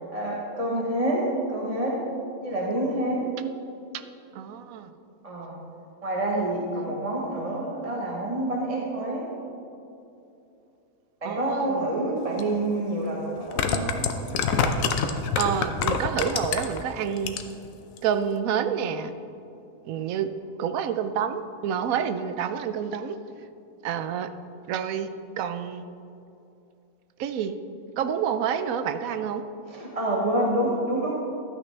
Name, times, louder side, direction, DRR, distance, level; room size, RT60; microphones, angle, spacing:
voice 1, 0.1-2.0 2.4-3.3 5.2-5.6 6.0-9.3 11.2-14.3 29.7-31.2, right 1 dB, 30° right, -3 dB, 1.0 m, -27 dB
voice 2, 4.3-4.9 6.3-6.5 6.7-7.0 11.2-11.9 15.4-17.4 18.0-19.1 19.8-20.3 20.6-23.2 23.8-24.3 24.7-25.1 25.4-25.8 27.2-27.5 28.0-29.4, right 8 dB, 80° right, 10 dB, 1.0 m, -28 dB
sound 1, 12.4-12.5 13.4-16.8 17.2-17.7 18.0-18.1, left 6 dB, 75° left, 1.1 m, -25 dB
12.0 x 8.9 x 3.3 m, 2.7 s
omnidirectional pair, 1.5 m